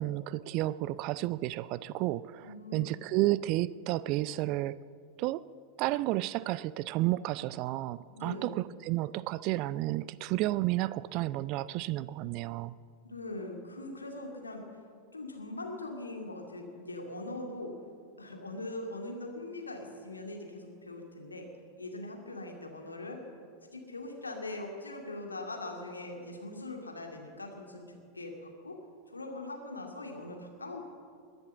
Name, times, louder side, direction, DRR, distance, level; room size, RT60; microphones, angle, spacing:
voice 1, 0.0-4.7 5.2-5.4 5.8-12.7, right 16 dB, 40° right, 18 dB, 0.3 m, -31 dB
voice 2, 2.4-2.9 8.1-8.6 13.0-14.7 15.1-17.7 18.2-21.4 21.8-23.2 23.7-28.8 29.1-30.8, left 2 dB, 80° left, 2 dB, 2.3 m, -41 dB
21.5 x 7.9 x 7.4 m, 2.3 s
figure-of-eight pair, 90°, 0 cm